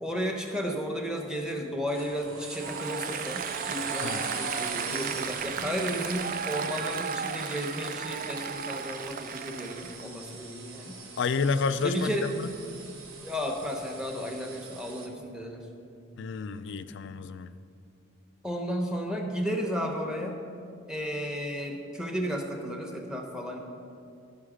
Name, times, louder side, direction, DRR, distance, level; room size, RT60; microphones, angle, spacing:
voice 1, 0.0-11.0 11.8-12.3 13.2-15.7 18.4-20.4 20.9-23.6, equal, 5° right, 2 dB, 0.9 m, -33 dB
sound 1, 1.9-15.1, right 4 dB, 80° right, 1.2 m, -42 dB
Applause, 2.5-10.1, right 7 dB, 45° right, 0.3 m, -35 dB
voice 2, 11.2-12.5 16.2-17.5, left 5 dB, 60° left, 12 dB, 0.4 m, -30 dB
11.0 x 5.6 x 5.0 m, 2.4 s
head